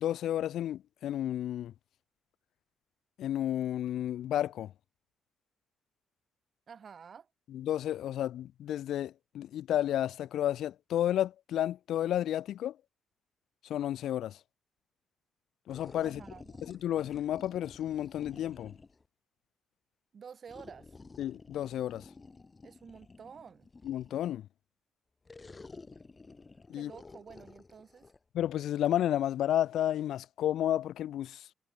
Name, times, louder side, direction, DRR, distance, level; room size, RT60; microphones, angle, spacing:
voice 1, 0.0-1.7 3.2-4.7 7.5-12.8 13.7-14.4 15.7-16.2 16.6-18.8 21.2-22.1 23.8-24.5 26.7-26.9 28.3-31.5, left 11 dB, 75° left, 0.8 m, -32 dB
voice 2, 6.7-7.3 16.0-16.6 20.1-20.9 22.6-23.7 26.7-28.1, right 6 dB, 45° right, 6.5 m, -50 dB
sound 1, 15.7-19.1 20.5-24.3 25.3-28.2, left 3 dB, 25° left, 5.4 m, -52 dB
cardioid pair, 90°, 0 cm